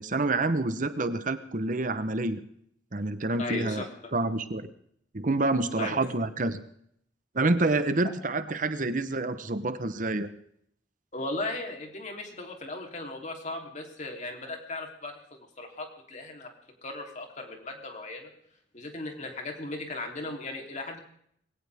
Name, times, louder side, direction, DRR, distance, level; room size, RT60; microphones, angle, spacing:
voice 1, 0.0-2.4 2.9-3.8 4.1-4.7 5.1-6.6 7.3-10.3, right 2 dB, 45° right, 11 dB, 1.0 m, -28 dB
voice 2, 3.4-4.1 5.8-6.0 11.1-16.5 16.8-18.3 18.7-21.0, left 2 dB, 40° left, 2 dB, 3.4 m, -37 dB
21.0 x 17.5 x 3.6 m, 0.68 s
head